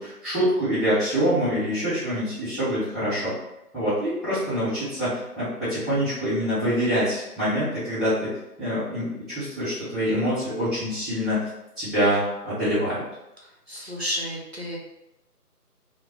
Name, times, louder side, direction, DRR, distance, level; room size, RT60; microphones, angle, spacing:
voice 1, 0.0-3.3 3.7-11.5 11.8-13.0, equal, ahead, -14 dB, 0.6 m, -25 dB
voice 2, 13.4-14.8, equal, 45° right, -4 dB, 0.4 m, -32 dB
2.1 x 2.1 x 2.9 m, 0.91 s
figure-of-eight pair, 165°, 48 cm